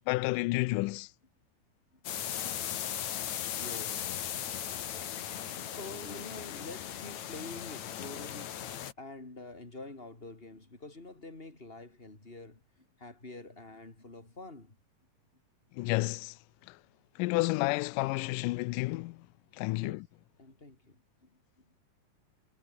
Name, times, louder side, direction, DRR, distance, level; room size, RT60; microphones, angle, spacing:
voice 1, 0.1-1.1 15.8-16.3 17.2-19.2 19.6-20.1, left 22 dB, 80° left, 2.1 m, -30 dB
voice 2, 1.9-2.4 3.3-4.1 4.8-8.6 9.0-14.8 19.7-20.0 20.4-21.8, left 2 dB, 15° left, 3.6 m, -47 dB
sound 1, 2.0-8.9, left 10 dB, 60° left, 2.8 m, -37 dB
omnidirectional pair, 4.0 m